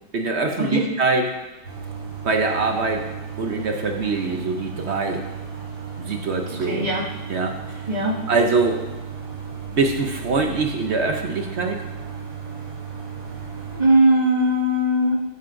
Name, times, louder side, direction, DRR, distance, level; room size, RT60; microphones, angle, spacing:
voice 1, 0.1-1.3 2.2-3.1 3.4-5.2 6.0-6.9 7.3-7.9 8.3-8.8 9.7-11.8, right 3 dB, 60° right, 3 dB, 0.7 m, -23 dB
sound 1, 1.6-13.8, right 6 dB, 85° right, 2.4 m, -35 dB
voice 2, 6.7-7.0 7.9-8.2 13.7-15.2, right 1 dB, 25° right, -5 dB, 1.8 m, -19 dB
13.0 x 9.5 x 2.6 m, 1.1 s
omnidirectional pair, 2.1 m